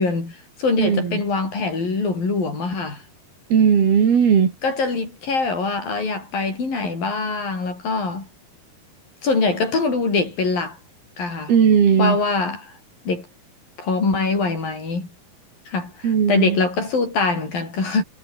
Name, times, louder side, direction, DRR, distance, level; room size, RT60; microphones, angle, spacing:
voice 1, 0.0-3.0 4.6-8.3 9.2-10.8 11.2-11.5 12.0-12.7 13.0-13.3 13.8-15.1 15.7-18.0, left 3 dB, 65° left, 9.8 m, -23 dB
voice 2, 0.8-1.2 3.5-4.5 11.5-12.2 16.0-16.6, right 7 dB, 90° right, 5.6 m, -17 dB
omnidirectional pair, 4.3 m